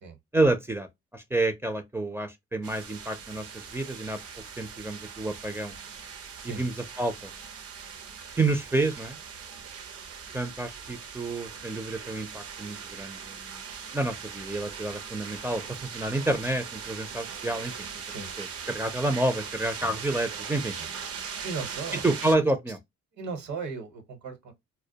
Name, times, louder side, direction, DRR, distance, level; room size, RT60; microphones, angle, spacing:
voice 1, 0.3-0.9 1.1-4.2 4.6-5.7 6.4-7.1 8.4-9.2 10.3-13.6 13.9-17.7 18.4-20.7 21.9-22.8, right 2 dB, 10° right, 0.4 m, -29 dB
sound 1, 2.6-22.4, right 6 dB, 50° right, 0.6 m, -40 dB
voice 2, 21.4-22.0 22.3-22.5 23.1-24.5, right 4 dB, 70° right, 1.1 m, -37 dB
2.2 x 2.2 x 2.7 m
cardioid pair, 90°, 30 cm